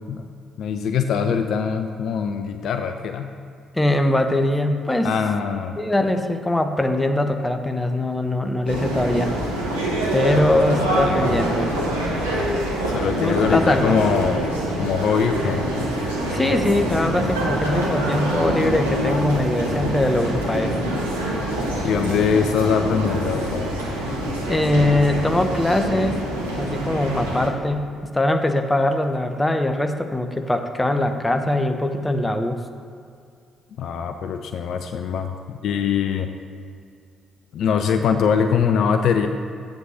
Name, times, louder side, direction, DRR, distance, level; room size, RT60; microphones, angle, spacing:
voice 1, 0.6-3.3 5.0-5.8 10.3-11.4 12.8-14.5 14.8-15.6 21.8-23.8 33.8-36.3 37.5-39.3, left 6 dB, 55° left, 7 dB, 0.4 m, -22 dB
voice 2, 3.7-5.1 5.8-9.3 10.1-11.8 13.2-14.0 16.3-20.9 24.4-26.2 26.5-32.6, left 1 dB, 15° left, 6 dB, 0.8 m, -22 dB
sound 1, 8.7-27.5, right 1 dB, 80° right, 1.0 m, -25 dB
7.8 x 5.2 x 6.3 m, 2.3 s
figure-of-eight pair, 40°, 0 cm